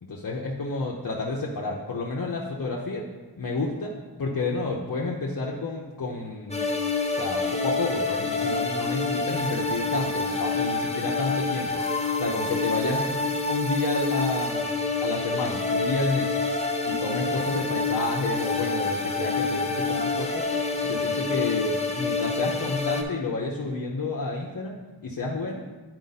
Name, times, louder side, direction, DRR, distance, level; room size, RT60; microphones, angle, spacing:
voice 1, 0.0-3.0 3.4-3.9 4.2-6.6 7.2-11.8 12.2-13.2 13.5-14.7 15.0-16.4 16.9-20.5 20.8-25.6, left 3 dB, 50° left, -3 dB, 0.8 m, -30 dB
sound 1, 6.5-23.0, left 3 dB, 15° left, 0.8 m, -27 dB
9.0 x 4.4 x 4.1 m, 1.3 s
wide cardioid pair, 85°, 41 cm